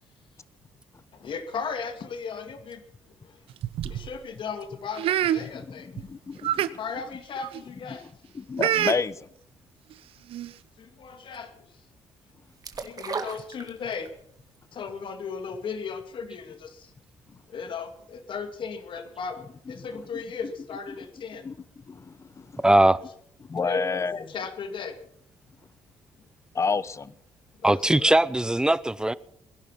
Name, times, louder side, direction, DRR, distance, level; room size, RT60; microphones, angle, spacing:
voice 1, 1.1-2.8 3.2-3.3 3.9-5.9 6.8-8.1 10.8-11.5 12.8-14.1 14.7-16.9 17.5-21.4 23.5-25.0 26.5-26.7 27.6-28.2, left 5 dB, 60° left, 2.3 m, -36 dB
sound 1, 3.5-4.1 5.0-5.4 6.0-6.1 6.4-6.7 7.4-7.6 8.6-9.0 9.9-10.0 10.3-10.5, right 11 dB, 75° right, 0.7 m, -26 dB
voice 2, 5.5-6.8 7.9-8.1 8.3-9.3 19.7-20.2 21.4-21.5 21.9-22.6 23.5-24.2 26.5-27.1, left 5 dB, 30° left, 0.8 m, -30 dB
sound 2, 12.6-14.2 14.5-14.6, right 5 dB, 40° right, 1.9 m, -34 dB
voice 3, 22.6-23.0 27.6-29.1, right 1 dB, 10° right, 0.7 m, -20 dB
22.0 x 11.0 x 5.8 m
cardioid pair, 95°, 10 cm